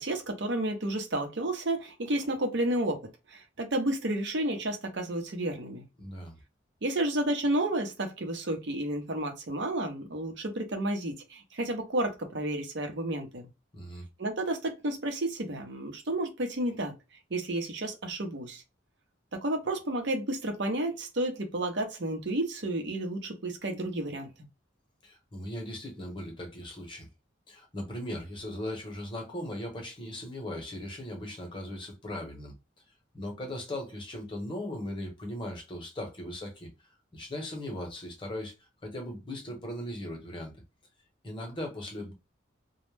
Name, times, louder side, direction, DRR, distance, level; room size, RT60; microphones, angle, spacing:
voice 1, 0.0-3.0 3.3-5.8 6.8-13.5 14.2-16.9 17.3-18.6 19.3-24.3, right 1 dB, 65° right, 0.7 m, -31 dB
voice 2, 6.0-6.3 13.7-14.0 25.0-27.1 27.5-32.5 33.1-36.7 37.1-40.5 41.2-42.1, left 1 dB, 25° left, 0.9 m, -38 dB
2.2 x 2.0 x 3.2 m
head